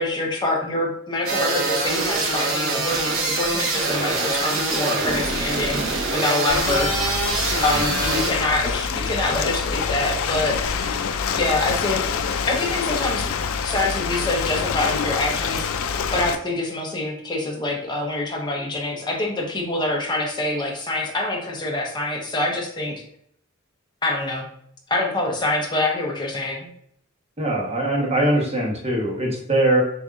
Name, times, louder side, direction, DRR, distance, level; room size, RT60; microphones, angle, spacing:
voice 1, 0.0-5.8 6.1-7.0 7.6-11.1 11.3-12.1 12.5-13.3 13.6-15.7 16.1-23.0 24.0-24.5 24.9-26.7, left 2 dB, 20° left, 0 dB, 0.9 m, -25 dB
sound 1, 1.3-8.3, right 3 dB, 75° right, 1.0 m, -24 dB
Ocean, 6.5-16.3, left 6 dB, 80° left, 0.4 m, -26 dB
voice 2, 27.4-29.8, right 1 dB, 30° right, -1 dB, 1.1 m, -22 dB
6.6 x 2.7 x 2.5 m, 0.68 s
head